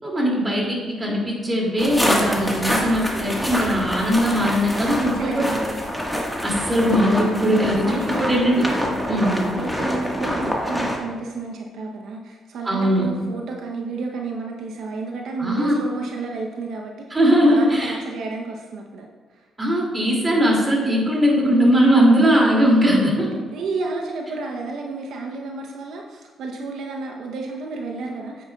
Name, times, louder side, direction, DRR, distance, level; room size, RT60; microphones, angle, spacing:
voice 1, 0.0-5.5 6.4-8.6 9.1-9.4 12.6-13.1 15.4-15.8 17.1-18.0 19.6-23.3, equal, 20° right, -2 dB, 2.5 m, -19 dB
sound 1, 1.8-11.0, equal, ahead, 1.5 m, -26 dB
voice 2, 4.8-5.8 7.8-8.4 9.0-17.1 17.4-19.1 19.3-19.4 23.2-28.4, right 3 dB, 75° right, 1 dB, 0.8 m, -31 dB
9.2 x 8.2 x 2.3 m, 1.4 s
cardioid pair, 90°, 0 cm